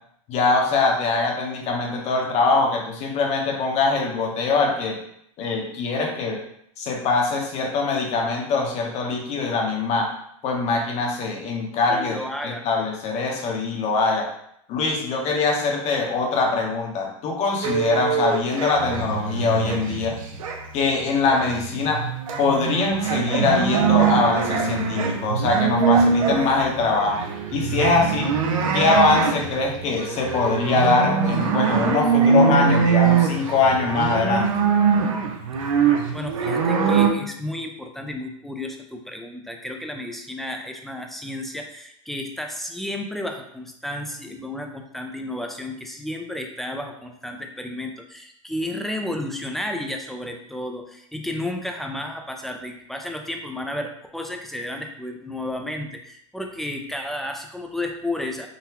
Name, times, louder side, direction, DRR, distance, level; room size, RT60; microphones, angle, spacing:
voice 1, 0.3-5.0 5.4-6.4 6.8-10.1 10.4-14.3 14.7-20.2 20.7-22.0 22.4-27.2 27.5-28.3 28.7-34.5, left 3 dB, 40° left, 1 dB, 0.8 m, -23 dB
voice 2, 11.9-12.7 36.1-58.5, left 1 dB, ahead, 3 dB, 0.4 m, -32 dB
sound 1, 17.6-20.7 21.0-37.1, right 6 dB, 85° right, 0.6 m, -22 dB
3.9 x 2.1 x 2.8 m, 0.72 s
hypercardioid pair, 115°, 17 cm